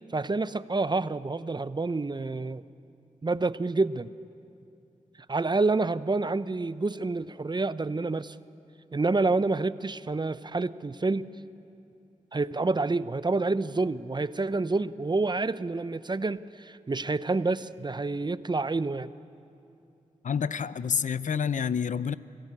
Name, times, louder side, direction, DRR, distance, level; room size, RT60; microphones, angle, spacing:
voice 1, 0.1-2.6 3.2-4.1 5.3-8.3 8.9-11.3 12.3-19.1, right 3 dB, 30° right, 15 dB, 0.7 m, -28 dB
voice 2, 20.2-22.2, left 7 dB, 60° left, 16 dB, 0.6 m, -28 dB
25.0 x 15.0 x 8.8 m, 2.7 s
cardioid pair, 45°, 14 cm